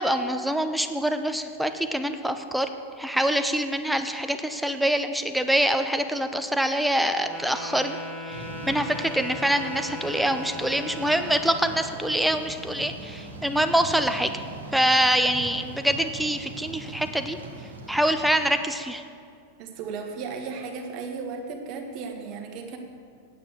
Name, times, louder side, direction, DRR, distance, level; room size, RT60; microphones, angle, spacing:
voice 1, 0.0-2.7 3.0-8.0 8.3-8.4 8.6-14.3 14.7-17.4 17.9-19.0, right 1 dB, ahead, 8 dB, 0.7 m, -25 dB
Wind instrument woodwind instrument, 7.2-11.8, left 1 dB, 15° left, 1.2 m, -38 dB
Thunder / Rain, 8.3-18.5, right 3 dB, 70° right, 1.7 m, -41 dB
voice 2, 19.6-22.8, right 5 dB, 40° right, 4 dB, 1.5 m, -35 dB
9.2 x 8.8 x 6.5 m, 2.3 s
figure-of-eight pair, 90°, 0 cm